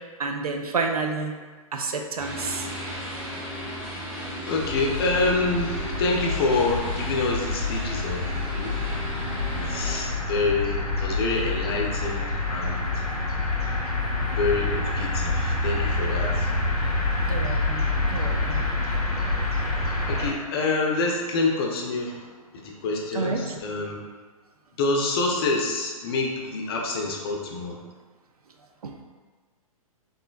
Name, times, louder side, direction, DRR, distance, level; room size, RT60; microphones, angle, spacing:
voice 1, 0.2-1.4 1.7-2.7 17.3-18.6 23.1-23.6 28.8-28.9, right 4 dB, 80° right, 3 dB, 0.4 m, -29 dB
sound 1, 2.2-10.1, equal, 10° right, 0.6 m, -35 dB
voice 2, 4.5-9.0 9.6-13.0 14.4-16.5 20.1-24.0 24.8-27.9, left 3 dB, 40° left, 0 dB, 0.5 m, -27 dB
sound 2, 4.6-20.3, left 2 dB, 90° left, 0.5 m, -27 dB
3.6 x 2.0 x 2.2 m, 1.4 s
figure-of-eight pair, 125°, 19 cm